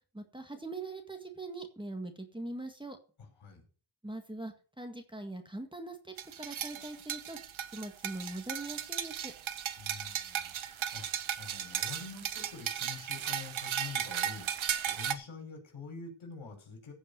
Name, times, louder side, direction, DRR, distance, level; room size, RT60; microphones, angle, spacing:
voice 1, 0.1-3.0 4.0-7.4 7.7-9.3, right 2 dB, 10° right, 5 dB, 1.8 m, -42 dB
voice 2, 3.2-3.6 9.8-11.1 11.4-16.9, left 5 dB, 80° left, 3 dB, 5.4 m, -46 dB
sound 1, 6.2-15.1, right 9 dB, 80° right, 1.1 m, -36 dB
16.0 x 5.4 x 6.8 m, 0.40 s
wide cardioid pair, 125°, 47 cm